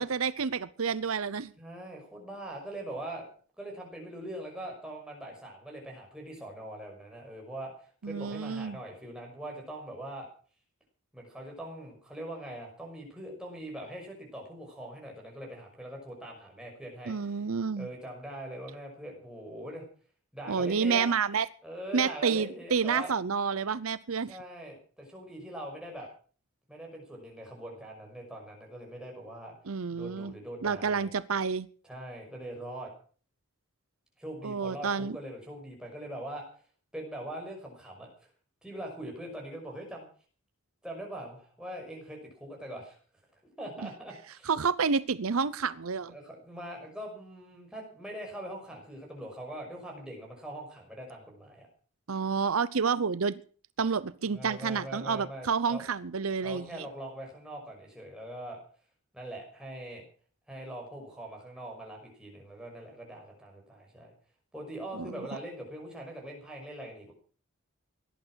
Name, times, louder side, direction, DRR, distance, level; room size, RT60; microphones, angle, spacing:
voice 1, 0.0-1.5 8.0-8.8 17.1-17.9 20.5-21.5 21.9-24.4 29.7-30.3 30.6-31.7 34.4-35.2 44.5-46.1 52.1-53.4 53.8-56.9 64.9-65.2, right 5 dB, 75° right, 16 dB, 0.7 m, -29 dB
voice 2, 1.6-3.3 3.6-10.3 11.1-17.4 17.8-19.8 20.3-21.1 21.6-23.1 24.3-26.1 26.7-29.5 29.9-31.1 31.8-32.9 34.2-36.5 36.9-38.1 38.6-40.1 40.8-43.0 43.6-44.5 46.1-51.7 54.3-55.8 56.4-58.6 59.1-60.0 60.5-64.1 64.5-67.1, right 1 dB, 5° right, -1 dB, 5.8 m, -42 dB
18.0 x 11.0 x 6.3 m, 0.43 s
head